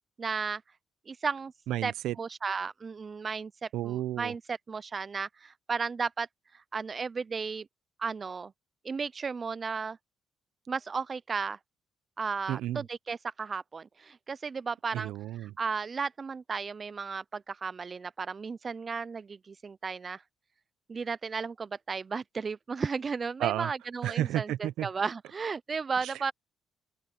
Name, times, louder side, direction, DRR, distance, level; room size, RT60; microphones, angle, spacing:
voice 1, 0.2-0.6 1.1-1.5 1.8-1.9 2.2-6.3 6.7-7.7 8.0-8.5 8.8-10.0 10.7-11.6 12.2-15.1 15.6-20.2 20.9-26.3, right 5 dB, 35° right, 0.3 m, -34 dB
voice 2, 1.7-2.2 3.7-4.3 12.5-12.8 14.9-15.6 23.4-23.7 24.0-24.9 26.0-26.3, right 13 dB, 90° right, 0.6 m, -32 dB
open air
cardioid pair, 90°, 0 cm